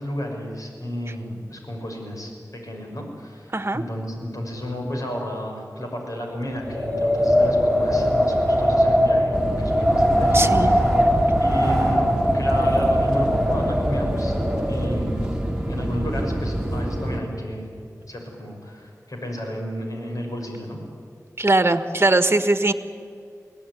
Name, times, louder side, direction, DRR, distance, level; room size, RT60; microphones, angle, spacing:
voice 1, 0.0-10.9 11.4-14.3 14.7-15.3 15.7-17.6 18.1-20.8, equal, 65° left, 1 dB, 6.2 m, -32 dB
voice 2, 3.5-3.8 10.3-10.7 21.4-22.7, right 2 dB, 40° right, 9 dB, 1.4 m, -20 dB
Wind, 6.5-15.0, equal, 5° left, 6.4 m, -21 dB
sound 1, 9.3-17.2, right 1 dB, 10° right, 2.4 m, -27 dB
23.0 x 17.5 x 9.8 m, 2.4 s
wide cardioid pair, 60°, 6 cm